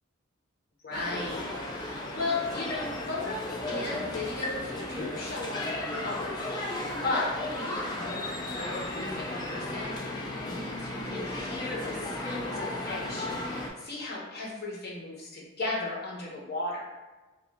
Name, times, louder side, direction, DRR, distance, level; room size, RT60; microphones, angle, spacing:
voice 1, 0.8-6.3 6.6-16.8, left 2 dB, 50° left, -4 dB, 0.7 m, -36 dB
sound 1, 0.9-13.7, left 1 dB, 20° left, 0.3 m, -35 dB
2.7 x 2.2 x 3.5 m, 1.2 s
head